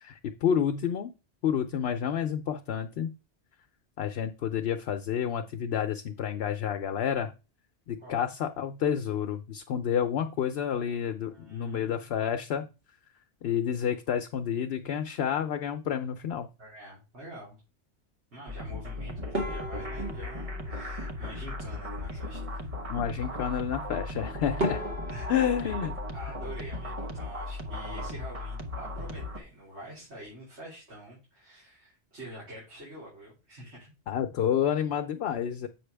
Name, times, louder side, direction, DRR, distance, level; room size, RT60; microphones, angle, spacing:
voice 1, 0.0-1.1 1.4-3.1 4.0-7.3 7.9-12.7 13.4-16.5 22.9-24.9 25.3-25.9 34.1-35.7, left 8 dB, 70° left, 7 dB, 0.9 m, -29 dB
voice 2, 11.3-12.6 16.6-17.6 18.3-22.7 25.1-25.3 25.6-33.9, equal, 85° right, -7 dB, 4.0 m, -46 dB
sound 1, 18.5-29.4, left 2 dB, 35° right, 1.0 m, -37 dB
sound 2, 19.3-21.8 24.1-24.2 24.6-27.4 27.6-28.4 28.7-28.9 29.2-29.3 29.9-30.3, equal, 60° right, 2.6 m, -38 dB
7.9 x 5.8 x 3.3 m, 0.29 s
omnidirectional pair, 1.1 m